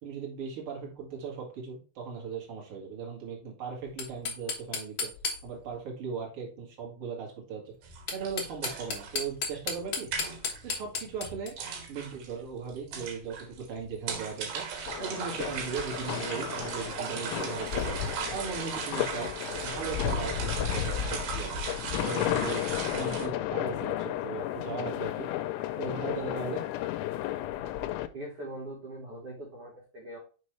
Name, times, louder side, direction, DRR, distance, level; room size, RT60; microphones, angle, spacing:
voice 1, 0.0-5.1 5.4-10.1 10.6-11.5 11.9-14.6 15.0-18.0 18.3-19.3 19.6-21.6 22.0-22.6 22.9-25.3 25.8-26.6, right 5 dB, 50° right, -1 dB, 1.7 m, -38 dB
sound 1, 3.9-5.8 7.9-11.5, left 5 dB, 70° left, 1.6 m, -34 dB
sound 2, 7.8-23.3, right 6 dB, 65° right, 3.0 m, -38 dB
sound 3, 14.9-28.1, left 12 dB, 85° left, 2.9 m, -33 dB
voice 2, 28.1-30.2, right 1 dB, 85° right, -2 dB, 1.2 m, -41 dB
6.7 x 5.3 x 3.2 m, 0.35 s
omnidirectional pair, 5.4 m